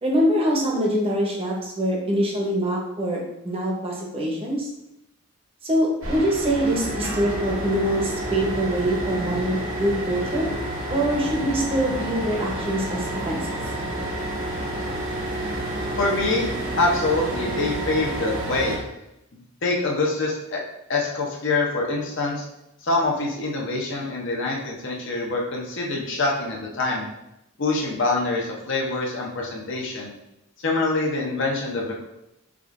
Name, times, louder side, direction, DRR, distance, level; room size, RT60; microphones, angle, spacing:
voice 1, 0.0-3.2 3.4-4.7 5.6-10.5 10.9-13.6, equal, 30° right, -2 dB, 0.8 m, -24 dB
sound 1, 6.0-18.8, right 1 dB, 80° right, 0.9 m, -29 dB
voice 2, 16.0-16.5 16.8-18.8 19.3-20.6 20.9-22.4 22.8-27.1 27.6-30.1 30.6-32.0, left 2 dB, 60° left, -2 dB, 0.8 m, -25 dB
4.8 x 2.4 x 2.5 m, 0.87 s
head